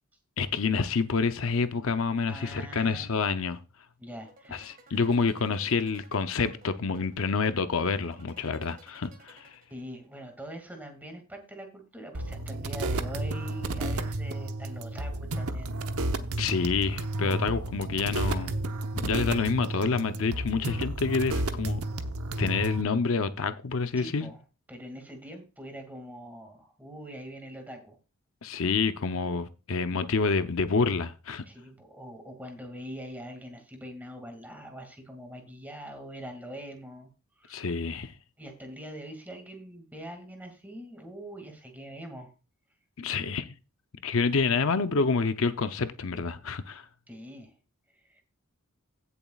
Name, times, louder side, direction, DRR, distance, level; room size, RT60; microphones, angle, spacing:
voice 1, 0.4-3.6 4.5-9.6 16.4-18.6 18.9-21.8 22.4-24.3 28.4-31.4 37.5-38.1 43.0-43.5 44.0-46.9, left 4 dB, 65° left, 0.6 m, -28 dB
voice 2, 2.3-3.0 4.0-4.9 9.7-15.8 17.2-17.5 24.0-24.4 24.7-28.0 31.5-37.7 38.4-42.3 47.1-47.6 47.9-48.2, equal, 10° right, 2.2 m, -43 dB
sound 1, 4.2-10.1, right 2 dB, 40° right, 1.8 m, -56 dB
sound 2, 12.1-22.8, right 2 dB, 85° right, 0.9 m, -32 dB
16.5 x 7.1 x 2.4 m
head